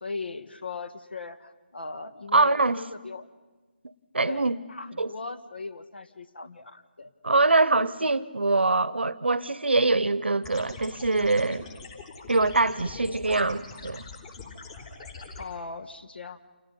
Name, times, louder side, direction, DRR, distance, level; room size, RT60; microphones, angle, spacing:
voice 1, 0.0-3.3 4.2-7.1 15.4-16.5, left 3 dB, 70° left, 1.7 m, -38 dB
voice 2, 2.3-2.8 4.1-4.6 5.0-5.1 7.2-11.7 12.3-14.1, right 3 dB, 80° right, 0.9 m, -23 dB
sound 1, 10.4-15.4, left 4 dB, 35° left, 3.5 m, -43 dB
29.5 x 28.0 x 5.6 m
figure-of-eight pair, 155°, 6 cm